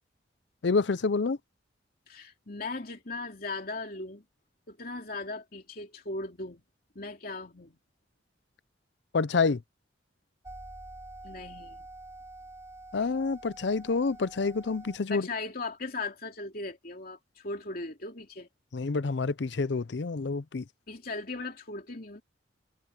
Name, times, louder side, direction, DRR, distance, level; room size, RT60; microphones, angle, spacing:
voice 1, 0.6-1.4 9.1-9.6 12.9-15.3 18.7-20.7, left 4 dB, 65° left, 0.6 m, -28 dB
voice 2, 2.1-4.2 4.7-6.6 6.9-7.8 11.2-11.9 15.1-18.5 20.9-22.2, left 3 dB, 50° left, 3.0 m, -38 dB
sound 1, 10.4-15.0, right 2 dB, 15° right, 4.5 m, -47 dB
head